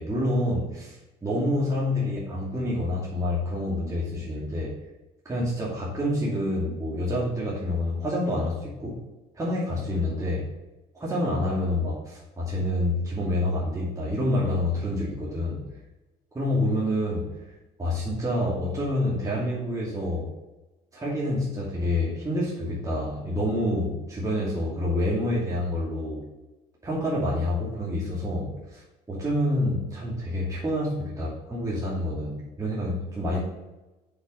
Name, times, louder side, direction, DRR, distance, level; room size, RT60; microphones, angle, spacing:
voice 1, 0.0-4.7 5.2-9.0 9.3-10.5 11.0-15.7 16.3-17.3 17.8-20.3 20.9-26.3 26.8-28.8 29.1-33.4, left 1 dB, 20° right, -6 dB, 2.5 m, -27 dB
6.5 x 5.9 x 5.1 m, 1.0 s
supercardioid pair, 90°, 17 cm